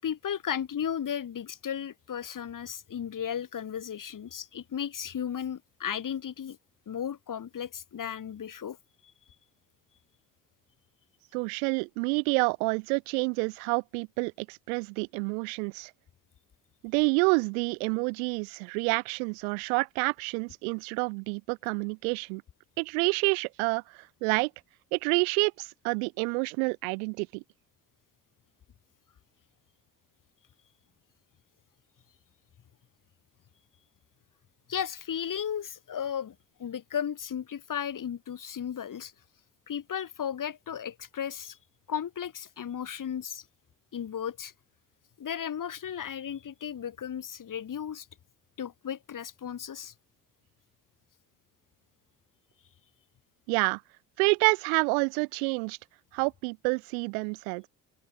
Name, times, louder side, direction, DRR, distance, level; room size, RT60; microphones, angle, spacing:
voice 1, 0.0-6.6 6.9-8.8 34.7-39.1 39.7-41.6 41.9-43.4 43.9-44.5 45.2-48.1 48.6-49.9, left 8 dB, 45° left, 5.1 m, -35 dB
voice 2, 11.3-15.9 16.8-22.4 22.8-23.8 24.2-24.5 24.9-27.4 53.5-53.8 54.2-55.8 56.1-57.7, right 38 dB, 65° right, 1.0 m, -28 dB
figure-of-eight pair, 50°, 46 cm